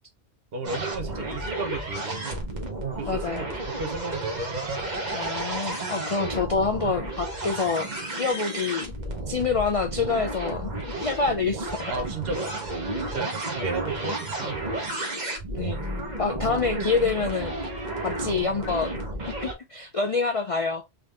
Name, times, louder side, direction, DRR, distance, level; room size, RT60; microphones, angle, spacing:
voice 1, 0.5-2.5 3.0-4.4 11.9-14.9, right 3 dB, 55° right, 1.1 m, -34 dB
sound 1, 0.6-19.5, right 2 dB, 40° right, 1.2 m, -32 dB
voice 2, 3.1-3.5 5.1-7.9 8.2-8.9 9.3-11.9 15.5-15.8 16.2-17.5 18.0-19.0 19.4-20.8, left 4 dB, 55° left, 0.4 m, -27 dB
3.9 x 3.4 x 2.4 m
omnidirectional pair, 1.2 m